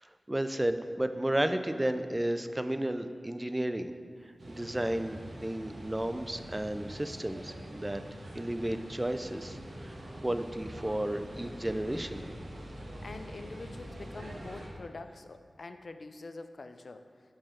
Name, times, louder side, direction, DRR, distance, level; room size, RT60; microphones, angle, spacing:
voice 1, 0.0-3.9 4.2-8.0 8.3-12.2, right 1 dB, 20° right, 9 dB, 0.4 m, -33 dB
sound 1, 4.4-14.7, right 1 dB, 75° right, 1.2 m, -44 dB
voice 2, 13.0-17.0, left 3 dB, 70° left, 8 dB, 0.5 m, -45 dB
7.3 x 4.9 x 5.8 m, 2.2 s
wide cardioid pair, 55°, 0 cm